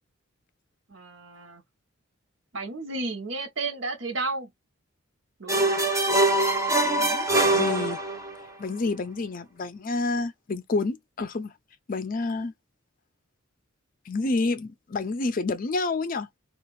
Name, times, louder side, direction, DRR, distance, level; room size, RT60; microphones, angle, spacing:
voice 1, 0.9-1.6 2.5-4.5 5.4-5.9, right 3 dB, 65° right, 0.9 m, -33 dB
sound 1, 5.5-8.4, right 2 dB, 15° right, 0.8 m, -23 dB
voice 2, 6.8-8.0 8.6-11.5 11.9-12.5 14.1-16.3, left 3 dB, 45° left, 0.5 m, -29 dB
2.7 x 2.4 x 3.0 m
head